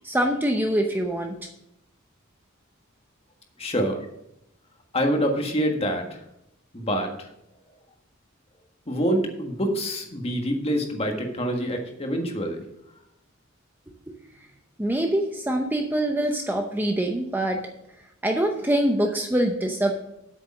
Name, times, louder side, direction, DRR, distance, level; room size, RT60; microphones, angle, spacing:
voice 1, 0.0-1.4 14.8-17.6 18.2-20.0, right 1 dB, 10° right, 3 dB, 0.7 m, -24 dB
voice 2, 3.6-4.0 4.9-6.2 6.7-7.3 8.9-12.6, equal, 30° left, 3 dB, 1.6 m, -26 dB
8.4 x 6.7 x 6.3 m, 0.81 s
head